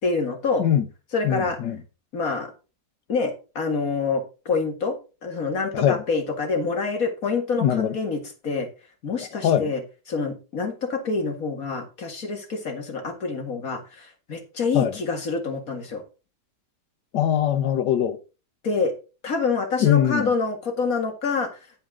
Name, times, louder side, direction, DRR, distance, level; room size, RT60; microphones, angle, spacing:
voice 1, 0.0-0.7 1.1-1.6 2.1-2.5 3.1-5.0 5.2-8.7 9.0-9.8 10.1-16.0 18.6-18.9 19.2-21.5, left 4 dB, 55° left, 2.2 m, -26 dB
voice 2, 1.2-1.8 5.7-6.0 7.6-8.0 9.4-9.7 14.7-14.9 17.1-18.2 19.8-20.3, left 10 dB, 85° left, 1.6 m, -21 dB
10.5 x 8.6 x 3.7 m
omnidirectional pair, 1.8 m